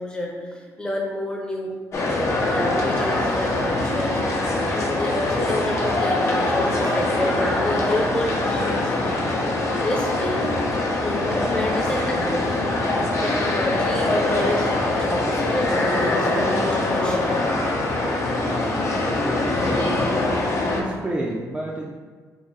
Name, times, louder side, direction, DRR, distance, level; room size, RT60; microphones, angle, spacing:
voice 1, 0.0-1.7 2.5-9.0 9.7-10.5 11.0-12.6 13.2-14.7 14.9-17.4, left 1 dB, 15° left, -1 dB, 0.8 m, -29 dB
sound 1, 1.9-20.8, left 2 dB, 50° left, 0.7 m, -23 dB
voice 2, 18.4-20.2 20.7-21.9, right 1 dB, 15° right, -3 dB, 0.5 m, -31 dB
3.8 x 2.7 x 4.0 m, 1.5 s
cardioid pair, 110°, 6 cm